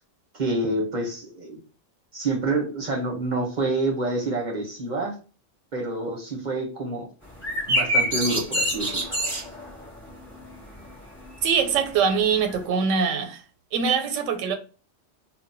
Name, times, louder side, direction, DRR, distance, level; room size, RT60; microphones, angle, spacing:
voice 1, 0.3-1.6 2.1-5.2 5.7-7.1 7.7-9.0, right 2 dB, 45° right, 0.7 m, -27 dB
sound 1, 7.2-12.6, equal, 10° left, 0.8 m, -28 dB
voice 2, 11.4-13.4 13.7-14.6, right 6 dB, 85° right, 0.9 m, -23 dB
2.1 x 2.0 x 3.8 m
omnidirectional pair, 1.3 m